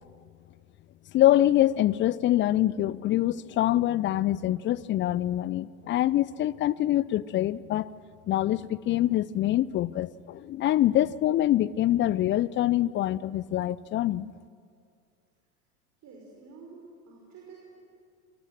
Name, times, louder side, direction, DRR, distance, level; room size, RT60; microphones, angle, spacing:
voice 1, 1.1-7.9 8.3-14.3, left 13 dB, 25° left, 21 dB, 0.6 m, -25 dB
voice 2, 16.0-17.7, right 4 dB, 40° right, -1 dB, 6.2 m, -49 dB
30.0 x 24.5 x 7.6 m, 2.2 s
figure-of-eight pair, 85°, 44 cm